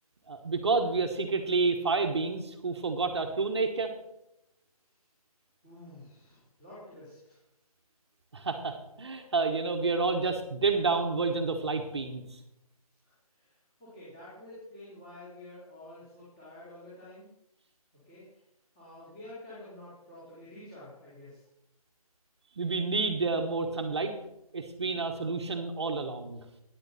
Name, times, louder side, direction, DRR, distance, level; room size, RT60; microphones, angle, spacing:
voice 1, 0.3-3.9 8.3-12.4 22.6-24.1 24.5-26.4, right 4 dB, 45° right, 5 dB, 1.3 m, -29 dB
voice 2, 5.6-7.4 13.0-13.5 13.8-17.3 18.0-18.2 18.7-21.4, left 1 dB, 15° left, -11 dB, 3.4 m, -49 dB
13.5 x 9.8 x 4.2 m, 0.85 s
figure-of-eight pair, 165°, 19 cm